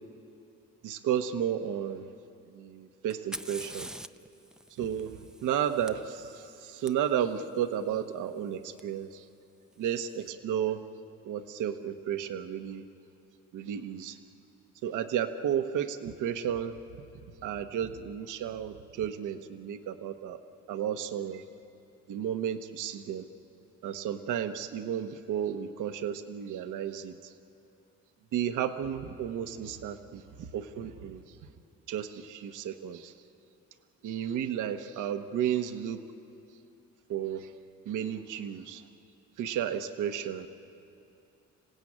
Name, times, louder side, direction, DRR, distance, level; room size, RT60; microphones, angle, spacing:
voice 1, 0.8-2.1 2.5-3.9 4.7-9.3 9.8-10.8 11.2-12.8 13.5-14.2 14.8-16.8 17.1-20.4 20.7-21.4 22.1-23.3 23.8-27.3 28.3-31.4 31.9-33.1 34.0-36.0 37.1-37.5 37.8-38.9 39.4-40.5, right 9 dB, 80° right, 8 dB, 1.1 m, -33 dB
Fire, 3.1-6.9 8.8-8.9 9.7-10.1, right 1 dB, ahead, 0.5 m, -45 dB
27.0 x 17.0 x 8.7 m, 2.7 s
cardioid pair, 90°, 30 cm